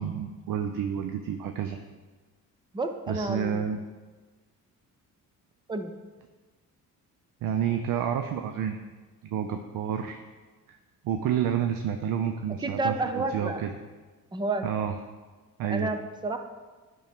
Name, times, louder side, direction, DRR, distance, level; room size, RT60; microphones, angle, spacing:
voice 1, 0.0-1.8 3.1-3.8 7.4-8.8 9.2-10.2 10.7-10.8 11.0-13.7 14.6-15.0 15.6-15.9, right 8 dB, 70° right, 7 dB, 0.6 m, -29 dB
voice 2, 2.7-3.7 5.7-5.9 12.6-13.7 14.3-14.6 15.7-16.4, right 2 dB, 15° right, 7 dB, 0.5 m, -30 dB
9.8 x 6.2 x 3.5 m, 1.3 s
cardioid pair, 150°, 35 cm